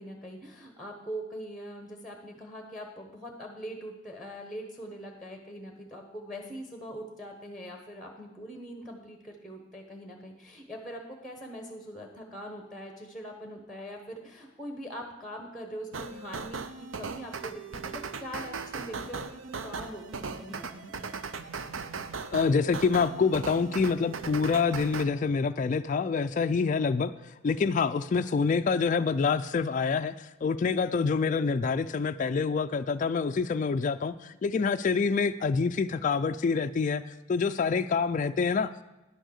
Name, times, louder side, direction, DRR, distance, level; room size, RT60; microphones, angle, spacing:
voice 1, 0.0-20.9, equal, ahead, 3 dB, 1.0 m, -42 dB
sound 1, 15.9-25.0, right 4 dB, 75° right, 0.6 m, -38 dB
voice 2, 22.3-27.1 27.4-37.0 37.3-38.8, left 5 dB, 40° left, 9 dB, 0.3 m, -26 dB
10.5 x 6.4 x 6.4 m, 1.1 s
head